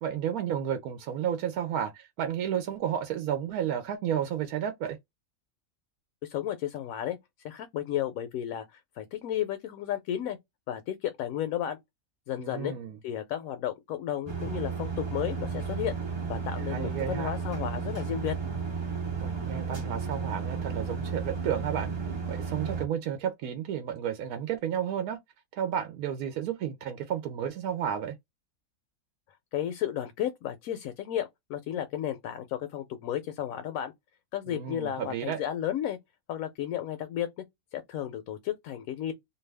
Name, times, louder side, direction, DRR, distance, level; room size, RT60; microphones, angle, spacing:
voice 1, 0.0-5.0 12.4-13.0 16.6-17.3 19.2-21.9 22.3-25.2 25.5-28.1 34.5-35.4, right 9 dB, 85° right, 1.1 m, -32 dB
voice 2, 6.2-7.2 7.4-10.4 10.7-11.8 12.3-12.7 13.0-16.0 16.3-18.4 29.5-33.9 34.3-36.0 36.3-37.4 37.7-39.1, left 11 dB, 75° left, 1.0 m, -33 dB
sound 1, 14.3-22.8, right 5 dB, 25° right, 0.6 m, -33 dB
2.6 x 2.3 x 3.2 m
omnidirectional pair, 1.5 m